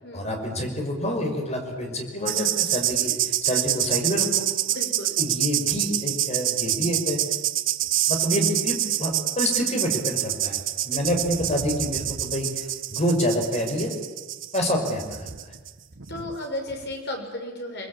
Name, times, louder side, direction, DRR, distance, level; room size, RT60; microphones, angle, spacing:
voice 1, 0.1-4.5 5.2-7.2 8.1-13.9 14.5-15.3, equal, 35° left, 3 dB, 5.7 m, -27 dB
sound 1, 2.3-16.4 16.7-16.9, right 13 dB, 80° right, 1.3 m, -27 dB
voice 2, 4.7-5.2 10.9-11.0 16.1-17.9, left 1 dB, 60° left, 3 dB, 6.0 m, -34 dB
29.5 x 21.5 x 8.7 m, 1.3 s
head